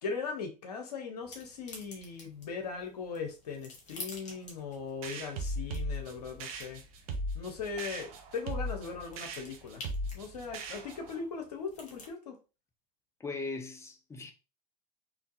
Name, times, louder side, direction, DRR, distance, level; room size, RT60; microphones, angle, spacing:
voice 1, 0.0-6.8 7.3-9.8 10.1-12.4, left 5 dB, 65° left, 0.9 m, -39 dB
sound 1, 1.2-12.1, left 3 dB, 35° left, 1.3 m, -51 dB
sound 2, 5.0-11.2, right 1 dB, 55° right, 0.7 m, -38 dB
voice 2, 13.2-14.3, left 3 dB, 15° left, 0.6 m, -39 dB
3.7 x 2.6 x 2.6 m
figure-of-eight pair, 75°, 21 cm